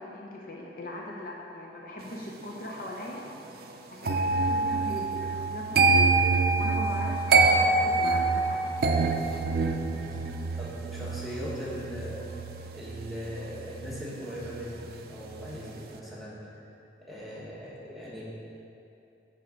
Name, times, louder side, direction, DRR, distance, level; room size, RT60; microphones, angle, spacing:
voice 1, 0.0-3.3 3.9-6.2 6.6-8.6, left 1 dB, 50° left, -2 dB, 0.7 m, -40 dB
sound 1, 4.0-15.0 15.3-15.7, right 3 dB, 55° right, 0.4 m, -26 dB
voice 2, 9.5-12.2 12.7-16.4 17.0-18.2, equal, ahead, -8 dB, 1.2 m, -39 dB
9.1 x 3.6 x 5.1 m, 2.8 s
head